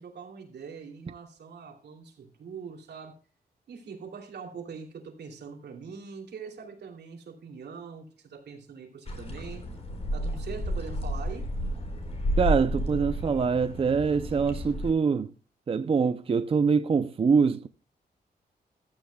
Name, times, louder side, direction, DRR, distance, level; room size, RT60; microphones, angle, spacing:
voice 1, 0.0-3.2 3.7-9.7 10.1-11.5, right 5 dB, 80° right, 2.9 m, -43 dB
sound 1, 9.1-14.9, equal, 35° left, 3.8 m, -31 dB
voice 2, 12.4-15.3 15.7-17.7, right 5 dB, 35° right, 0.5 m, -24 dB
15.0 x 12.5 x 2.3 m
wide cardioid pair, 150°, 17 cm